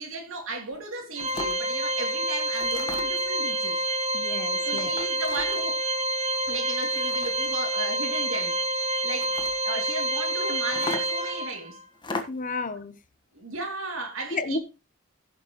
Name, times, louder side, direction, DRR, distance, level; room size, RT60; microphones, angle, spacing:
voice 1, 0.0-3.8 4.6-5.8 6.5-9.3 9.6-11.8 13.3-14.6, right 2 dB, 75° right, 3.1 m, -35 dB
sound 1, 0.7-0.8 1.2-1.6 2.5-3.3 4.7-5.7 6.8-7.7 9.1-9.6 10.7-11.3 11.9-12.5, left 2 dB, 25° left, 1.4 m, -37 dB
Organ, 1.2-11.8, right 1 dB, 30° right, 1.4 m, -28 dB
voice 2, 4.1-4.9 12.3-12.9 14.3-14.6, left 3 dB, 40° left, 0.9 m, -32 dB
16.0 x 6.9 x 3.1 m
head